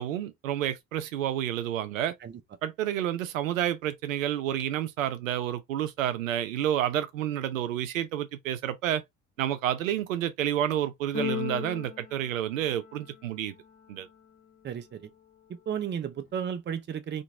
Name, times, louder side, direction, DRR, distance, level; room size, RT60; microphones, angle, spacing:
voice 1, 0.0-2.1 2.6-9.0 9.4-13.5 13.9-14.1, right 11 dB, 75° right, 0.6 m, -29 dB
Keyboard (musical), 11.1-13.3, left 9 dB, 20° left, 0.5 m, -36 dB
voice 2, 14.6-15.1 15.7-17.2, right 8 dB, 25° right, 0.7 m, -33 dB
2.9 x 2.6 x 3.5 m
figure-of-eight pair, 50°, 40 cm